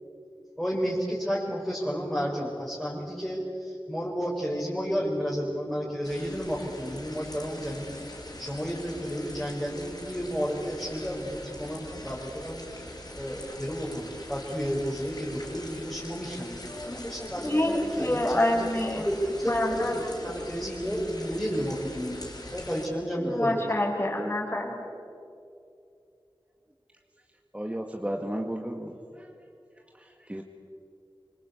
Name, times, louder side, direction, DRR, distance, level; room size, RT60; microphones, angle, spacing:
voice 1, 0.6-7.9 8.4-22.2 22.5-23.7, equal, 5° left, -5 dB, 5.0 m, -32 dB
sound 1, 6.0-22.9, left 1 dB, 45° left, 5.6 m, -43 dB
voice 2, 17.3-19.1 19.5-20.0 23.2-24.8, left 1 dB, 25° left, -1 dB, 5.6 m, -27 dB
voice 3, 27.5-29.3 30.0-30.4, equal, 15° right, 2 dB, 1.8 m, -34 dB
25.0 x 24.0 x 8.3 m, 2.6 s
wide cardioid pair, 55°, 9 cm